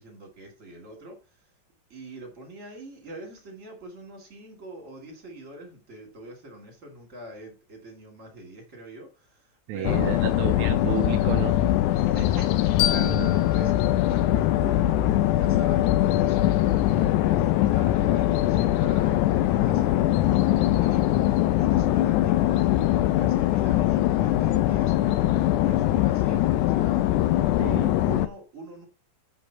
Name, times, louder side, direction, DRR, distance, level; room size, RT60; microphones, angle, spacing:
voice 1, 0.0-1.4 1.9-10.5 11.9-27.4 28.0-28.9, right 1 dB, 20° right, 2.9 m, -43 dB
voice 2, 9.7-11.6 13.1-13.3 27.6-28.0, right 11 dB, 90° right, 1.6 m, -31 dB
sound 1, 9.8-28.3, left 14 dB, 90° left, 1.7 m, -22 dB
sound 2, 12.8-15.6, left 12 dB, 75° left, 2.1 m, -32 dB
6.9 x 5.4 x 5.9 m
omnidirectional pair, 4.1 m